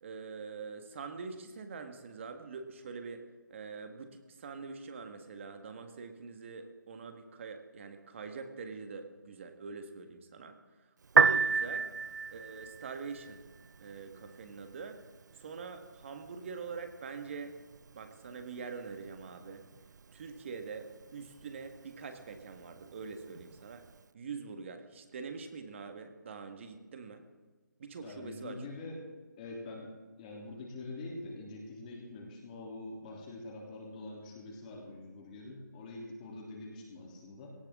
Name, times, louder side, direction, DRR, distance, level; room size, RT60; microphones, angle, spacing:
voice 1, 0.0-10.5 11.1-11.9 12.3-13.4 13.8-15.0 15.4-17.6 17.9-19.7 20.1-23.8 24.1-27.2 27.8-28.6, right 5 dB, 35° right, 6 dB, 1.7 m, -44 dB
Piano, 11.0-24.0, right 5 dB, 60° right, 0.5 m, -35 dB
voice 2, 28.0-29.0 29.4-29.9 30.2-37.5, left 2 dB, 25° left, -2 dB, 3.1 m, -45 dB
18.0 x 18.0 x 3.7 m, 1.3 s
figure-of-eight pair, 160°, 11 cm